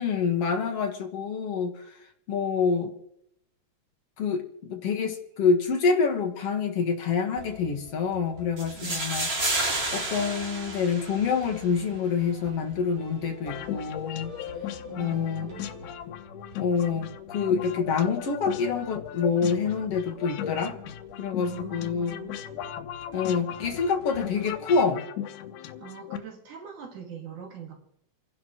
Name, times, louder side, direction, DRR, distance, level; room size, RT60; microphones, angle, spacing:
voice 1, 0.0-1.8 2.3-2.9 4.2-9.3 9.9-14.3 15.0-15.5 16.6-20.8 21.2-22.2 23.1-25.0, left 5 dB, 55° left, 3 dB, 2.3 m, -27 dB
sound 1, 7.4-25.2, right 1 dB, 50° right, 3.8 m, -48 dB
sound 2, 8.6-11.6, right 2 dB, 25° right, 1.7 m, -30 dB
voice 2, 8.7-9.2 14.9-15.6 21.5-22.3 25.7-27.7, right 7 dB, 80° right, 0 dB, 3.5 m, -43 dB
sound 3, 13.4-26.2, left 10 dB, 90° left, 2.3 m, -38 dB
30.0 x 11.0 x 3.0 m, 0.74 s
omnidirectional pair, 3.4 m